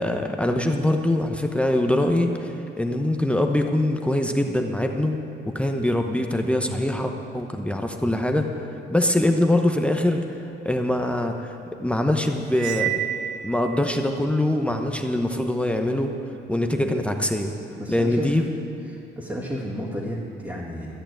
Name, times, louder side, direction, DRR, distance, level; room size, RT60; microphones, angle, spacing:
voice 1, 0.0-5.2 5.5-10.2 10.6-12.9 13.4-16.2 16.5-17.5 17.9-18.4, left 1 dB, 5° left, 3 dB, 0.9 m, -23 dB
Cymbal, 12.5-14.0, right 12 dB, 70° right, 0.4 m, -29 dB
voice 2, 17.8-18.4 18.9-21.0, equal, 10° right, -6 dB, 2.1 m, -32 dB
13.5 x 6.7 x 9.0 m, 3.0 s
cardioid pair, 90°, 20 cm